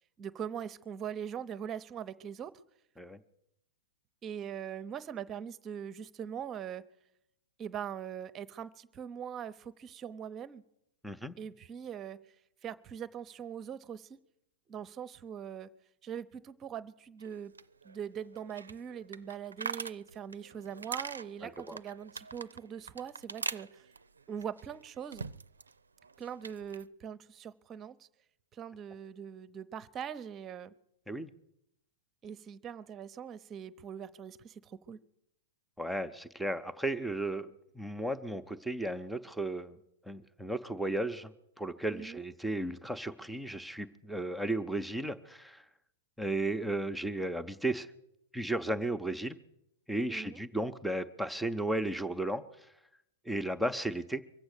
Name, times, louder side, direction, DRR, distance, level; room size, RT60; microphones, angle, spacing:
voice 1, 0.2-2.6 4.2-6.9 7.6-10.6 11.4-12.2 12.6-14.2 14.7-15.7 16.0-17.5 17.8-23.9 24.3-25.2 26.2-28.1 28.5-30.7 32.2-35.0 41.9-42.2 50.1-50.4, right 8 dB, 25° right, 14 dB, 0.8 m, -42 dB
voice 2, 11.0-11.3 21.4-21.8 31.1-31.3 35.8-39.8 40.1-41.3 41.6-45.6 46.2-47.9 48.3-49.4 49.9-52.4 53.3-54.2, right 1 dB, ahead, 7 dB, 0.8 m, -34 dB
sound 1, 17.2-25.7 26.0-26.9, right 4 dB, 85° right, 0.5 m, -43 dB
23.5 x 8.0 x 6.7 m, 0.82 s
figure-of-eight pair, 105°, 0 cm